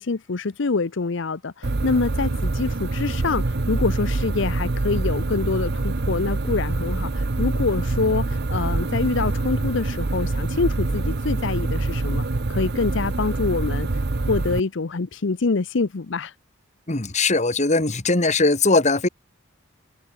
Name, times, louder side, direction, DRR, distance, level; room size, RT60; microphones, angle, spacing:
voice 1, 0.0-16.3, left 4 dB, 60° left, 0.7 m, -26 dB
sound 1, 1.6-14.6, right 2 dB, 50° right, 0.8 m, -25 dB
voice 2, 16.9-19.1, left 3 dB, 35° left, 1.7 m, -20 dB
head